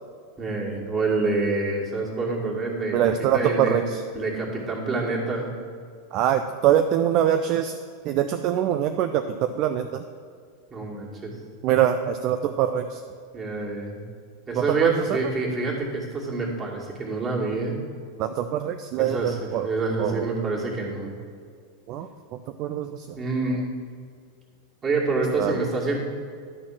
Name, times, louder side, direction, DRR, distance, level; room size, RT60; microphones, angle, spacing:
voice 1, 0.4-3.8 4.1-5.5 10.7-11.3 13.3-14.0 14.5-17.8 19.0-19.4 19.6-21.1 23.2-23.7 24.8-26.0, right 3 dB, 25° right, -3 dB, 2.3 m, -27 dB
voice 2, 2.9-4.0 6.1-7.7 8.0-10.0 11.6-13.0 14.5-15.2 18.2-19.7 20.0-20.3 21.9-23.2 25.4-25.6, right 10 dB, 45° right, 8 dB, 0.4 m, -24 dB
11.0 x 4.3 x 7.4 m, 2.2 s
figure-of-eight pair, 90°, 0 cm